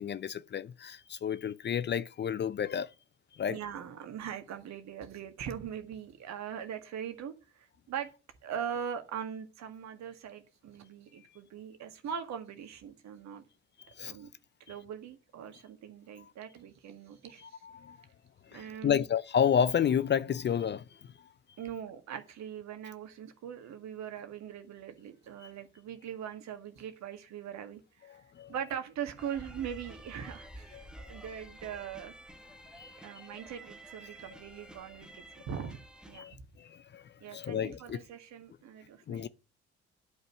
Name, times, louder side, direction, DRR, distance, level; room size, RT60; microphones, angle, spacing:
voice 1, 0.0-2.9 3.3-3.6 13.9-14.1 17.4-18.0 18.5-21.1 25.4-25.5 28.1-28.5 30.7-31.2 32.8-33.2 36.1-38.0 39.1-39.3, left 8 dB, 35° left, 0.6 m, -31 dB
voice 2, 3.5-8.1 8.4-13.4 14.1-14.3 14.7-17.6 18.5-19.0 21.6-28.2 28.5-32.1 33.0-36.4 37.2-39.3, right 8 dB, 55° right, 1.8 m, -41 dB
sound 1, 29.2-36.2, right 1 dB, ahead, 1.5 m, -50 dB
11.5 x 5.4 x 6.4 m
figure-of-eight pair, 45°, 33 cm